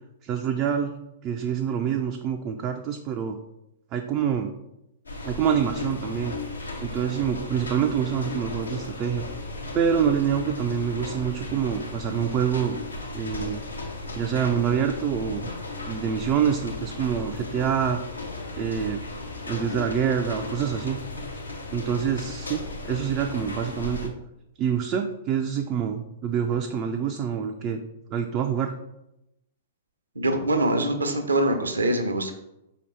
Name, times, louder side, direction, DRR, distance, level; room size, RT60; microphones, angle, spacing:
voice 1, 0.2-1.0 1.2-3.4 3.9-4.5 5.2-6.4 6.8-9.3 9.7-12.8 13.1-13.6 14.1-15.5 15.9-18.0 18.6-19.0 19.5-21.0 21.7-24.1 24.6-27.8 28.1-28.7, right 8 dB, 30° right, 4 dB, 0.3 m, -26 dB
sound 1, 5.1-24.1, left 3 dB, 80° left, 0.7 m, -36 dB
voice 2, 30.2-32.3, right 1 dB, 75° right, 6 dB, 0.7 m, -24 dB
5.0 x 2.8 x 3.2 m, 0.87 s
figure-of-eight pair, 105°, 0 cm